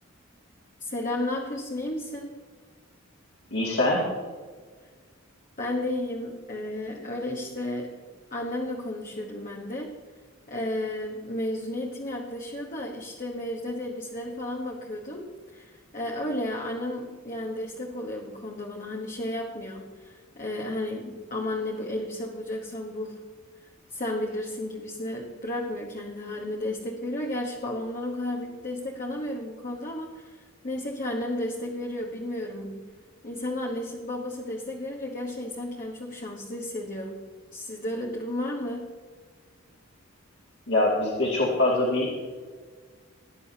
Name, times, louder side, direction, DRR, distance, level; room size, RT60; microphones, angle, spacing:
voice 1, 0.8-2.4 5.6-8.0 8.3-10.0 10.5-23.2 23.9-32.8 33.2-37.2 37.5-38.9, left 1 dB, 40° left, -2 dB, 1.2 m, -33 dB
voice 2, 3.5-4.0 40.7-42.1, left 1 dB, 65° left, -5 dB, 2.5 m, -23 dB
18.5 x 9.9 x 2.9 m, 1.5 s
head